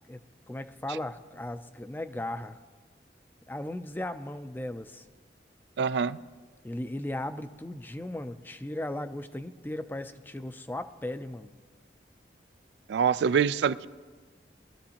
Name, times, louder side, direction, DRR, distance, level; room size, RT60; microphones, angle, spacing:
voice 1, 0.5-2.6 3.5-5.0 6.6-11.5, left 1 dB, 10° left, 10 dB, 0.4 m, -36 dB
voice 2, 5.8-6.2 12.9-13.9, right 7 dB, 80° right, 16 dB, 0.3 m, -25 dB
21.5 x 13.0 x 2.9 m, 1.4 s
head